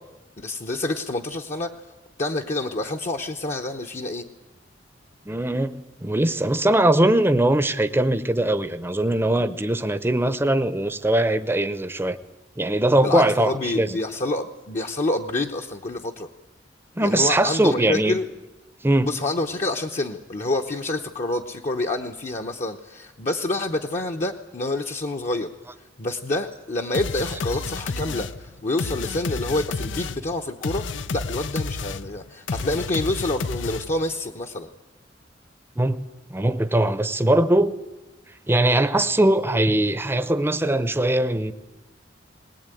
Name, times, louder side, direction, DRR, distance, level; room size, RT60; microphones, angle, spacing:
voice 1, 0.4-1.7 2.2-4.3 13.0-16.3 17.0-18.3 19.0-25.5 26.0-30.8 31.1-34.7, left 2 dB, 40° left, 1.0 m, -27 dB
voice 2, 5.3-12.2 12.6-14.0 17.0-18.2 18.8-19.1 35.8-36.0 36.3-37.8 38.5-41.5, right 1 dB, 15° right, 0.8 m, -21 dB
sound 1, 26.9-34.1, left 4 dB, 85° left, 0.7 m, -31 dB
20.5 x 19.5 x 9.2 m
head